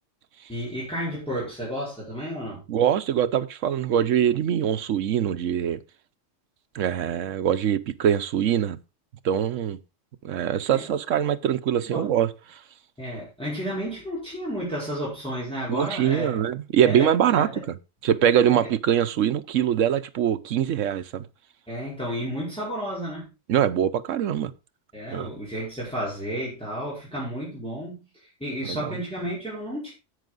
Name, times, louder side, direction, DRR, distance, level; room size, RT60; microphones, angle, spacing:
voice 1, 0.5-2.6 10.7-10.8 11.9-12.1 13.0-16.5 16.8-17.6 18.5-18.7 21.7-23.3 24.9-29.9, equal, 5° left, 4.7 m, -32 dB
voice 2, 2.7-5.8 6.7-8.8 9.2-9.8 10.2-12.6 15.7-17.8 18.0-21.3 23.5-24.5 25.1-25.3 28.6-29.0, right 9 dB, 80° right, 1.1 m, -23 dB
10.0 x 8.5 x 3.9 m
omnidirectional pair, 1.3 m